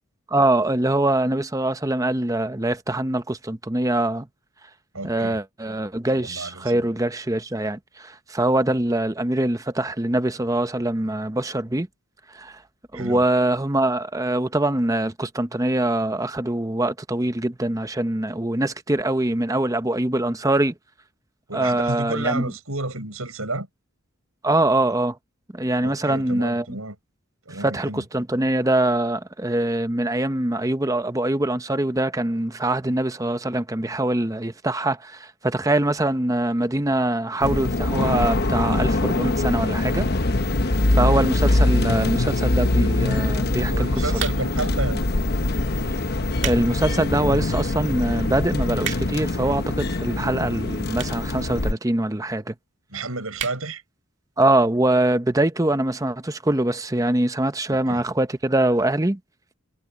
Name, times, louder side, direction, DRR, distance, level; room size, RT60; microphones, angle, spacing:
voice 1, 0.3-4.3 5.0-11.9 12.3-12.6 12.9-20.7 21.5-22.4 24.4-25.2 25.5-26.8 27.5-40.1 40.9-43.9 44.1-44.2 46.4-52.5 54.4-59.2, right 1 dB, 15° right, 0.8 m, -23 dB
voice 2, 4.9-5.4 6.2-6.9 12.9-13.2 21.5-23.7 25.8-27.0 27.5-28.0 43.7-45.0 52.9-53.8 57.7-58.0, right 2 dB, 85° right, 6.9 m, -31 dB
sound 1, 37.4-51.7, left 2 dB, 45° left, 1.0 m, -23 dB
sound 2, 44.1-44.7 45.4-45.6 46.1-46.7 47.1-47.2 47.8-47.9 48.1-48.2 48.4-49.3 50.1-50.2 50.9-51.3 51.6-51.7 51.9-52.0 52.2-52.3 52.6-52.8 53.3-53.6 54.0-54.1 54.3-54.4, right 9 dB, 55° right, 2.3 m, -32 dB
head